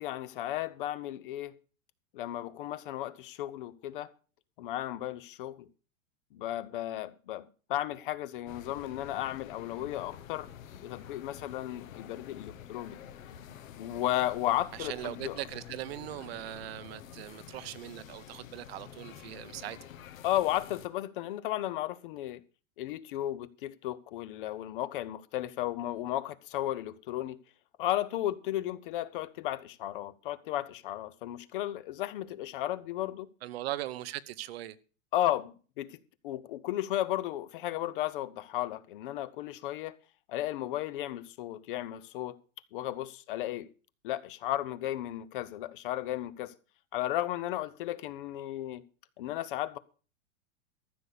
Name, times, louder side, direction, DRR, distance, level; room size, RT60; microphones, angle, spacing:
voice 1, 0.0-1.6 2.1-4.1 4.6-5.7 6.3-10.5 10.8-13.0 13.8-15.4 20.2-22.4 22.8-27.4 27.8-33.3 35.1-40.0 40.3-42.4 42.7-43.7 44.0-46.5 46.9-48.8 49.2-49.8, left 13 dB, 40° left, 0.7 m, -34 dB
sound 1, 8.5-20.9, left 9 dB, 75° left, 1.5 m, -48 dB
voice 2, 14.7-19.9 33.4-34.8, right 14 dB, 50° right, 0.8 m, -40 dB
14.0 x 6.9 x 6.6 m
supercardioid pair, 165°, 40 cm